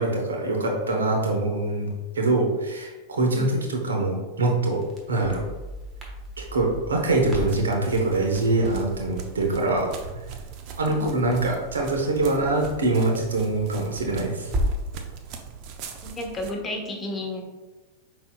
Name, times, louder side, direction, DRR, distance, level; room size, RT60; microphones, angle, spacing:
voice 1, 0.0-4.8 5.1-5.4 6.4-9.9 10.8-14.5, right 2 dB, 85° right, 1 dB, 0.9 m, -24 dB
Crackle, 4.7-15.0, equal, 25° right, 1.2 m, -36 dB
sound 1, 7.1-16.5, right 6 dB, 50° right, 0.6 m, -40 dB
voice 2, 16.0-17.4, left 1 dB, 20° left, 1 dB, 1.0 m, -32 dB
5.5 x 4.0 x 2.3 m, 1.2 s
hypercardioid pair, 100°, 0 cm